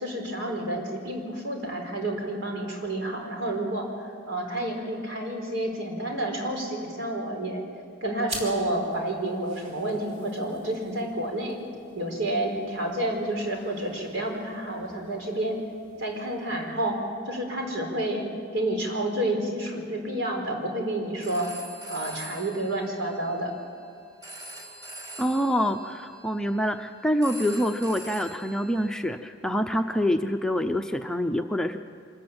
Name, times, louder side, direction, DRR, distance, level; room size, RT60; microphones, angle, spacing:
voice 1, 0.0-7.6 8.0-11.6 11.9-15.6 16.0-17.0 17.3-18.2 18.5-21.5 21.9-23.5, right 1 dB, 75° right, 2 dB, 4.6 m, -30 dB
sound 1, 8.2-17.2, right 1 dB, 35° right, 4.4 m, -46 dB
Telephone, 21.0-28.9, right 1 dB, 20° right, 4.1 m, -44 dB
voice 2, 25.2-31.8, equal, 5° left, 5 dB, 0.6 m, -26 dB
25.0 x 14.5 x 8.9 m, 2.2 s
head